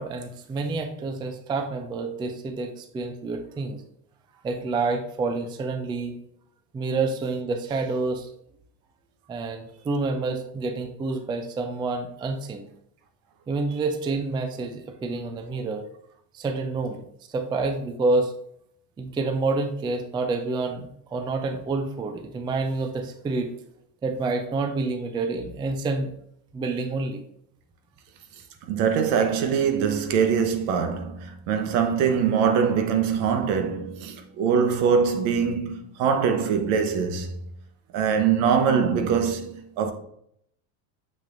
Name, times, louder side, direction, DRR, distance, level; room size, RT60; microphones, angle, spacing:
voice 1, 0.0-3.8 4.4-6.2 6.7-8.3 9.3-12.7 13.5-15.9 16.3-18.3 19.0-23.6 24.0-26.1 26.5-27.2, right 3 dB, 10° right, 0.3 m, -28 dB
voice 2, 28.6-37.5 37.9-39.9, right 6 dB, 65° right, 1.1 m, -23 dB
6.7 x 6.2 x 2.6 m
supercardioid pair, 120°, 46 cm